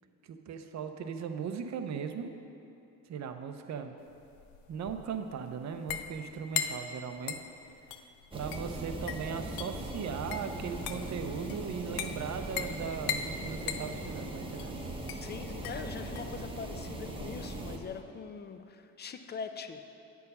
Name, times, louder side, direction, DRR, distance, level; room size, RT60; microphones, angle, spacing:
voice 1, 0.2-2.3 3.1-3.9 4.7-7.4 8.0-8.1 8.3-14.8, right 6 dB, 50° right, 7 dB, 0.6 m, -38 dB
sound 1, 4.1-18.0, left 8 dB, 70° left, 0.6 m, -40 dB
sound 2, 8.3-17.8, right 1 dB, 15° right, 0.9 m, -40 dB
voice 2, 15.2-19.8, left 5 dB, 30° left, 8 dB, 0.5 m, -42 dB
8.3 x 4.6 x 5.4 m, 2.7 s
cardioid pair, 85°, 36 cm